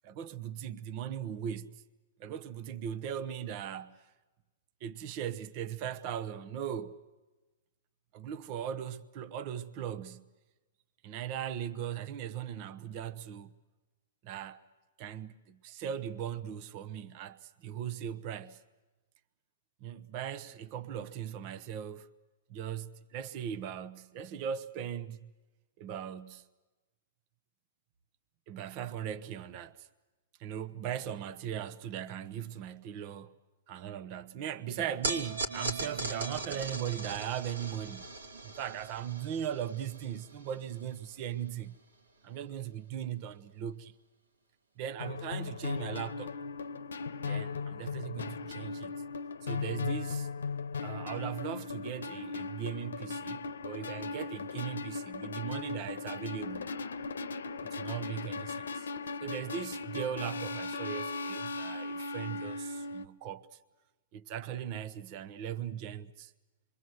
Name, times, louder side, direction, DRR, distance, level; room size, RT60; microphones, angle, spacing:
voice 1, 0.0-1.8 2.2-4.0 4.8-7.0 8.1-10.3 11.0-13.5 14.2-14.6 15.0-18.6 19.8-22.1 22.5-25.3 25.8-26.5 28.5-29.9 30.4-33.3 33.7-38.1 38.4-41.8 42.2-43.9 44.8-46.4 47.2-48.9 49.4-50.3 50.8-56.7 57.6-58.9 59.2-63.6 64.1-66.3, right 9 dB, 45° right, 1.0 m, -39 dB
sound 1, 35.0-41.4, right 2 dB, 85° right, 3.0 m, -39 dB
sound 2, 45.0-63.1, left 4 dB, 80° left, 0.8 m, -38 dB
27.0 x 23.5 x 8.0 m
hypercardioid pair, 120°, 0 cm